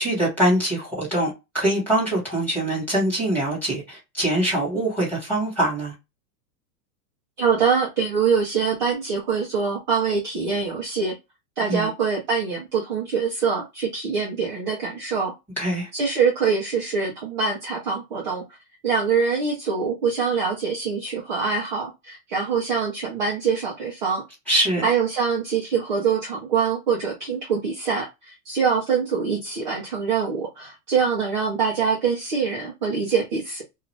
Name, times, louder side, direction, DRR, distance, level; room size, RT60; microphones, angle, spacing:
voice 1, 0.0-5.9 11.7-11.9 15.6-15.9 24.5-24.8, right 1 dB, 5° left, 1.4 m, -23 dB
voice 2, 7.4-11.1 11.6-15.3 15.9-18.4 18.8-24.2 24.8-33.6, right 5 dB, 30° right, 0.6 m, -24 dB
2.5 x 2.4 x 3.2 m
supercardioid pair, 170°, 50 cm